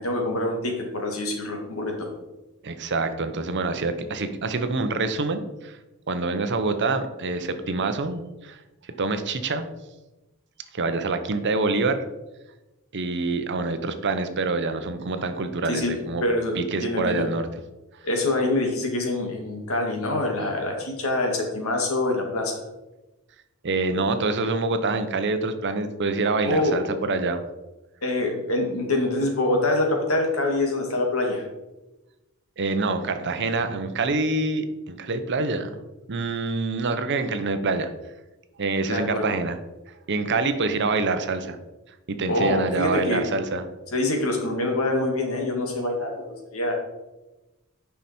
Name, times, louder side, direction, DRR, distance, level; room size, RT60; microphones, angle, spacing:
voice 1, 0.0-2.1 15.7-15.9 16.2-17.2 18.0-22.6 26.5-26.8 28.0-31.4 38.9-39.2 42.3-43.2 43.9-46.7, left 2 dB, 70° left, 1 dB, 2.0 m, -25 dB
voice 2, 2.6-5.7 6.1-8.6 9.0-9.7 10.7-12.0 12.9-16.2 16.5-17.5 23.6-27.4 32.6-35.7 36.1-37.9 38.6-39.6 40.1-41.6 42.1-43.6, right 3 dB, 55° right, 9 dB, 0.7 m, -26 dB
9.5 x 5.7 x 4.3 m, 1.0 s
head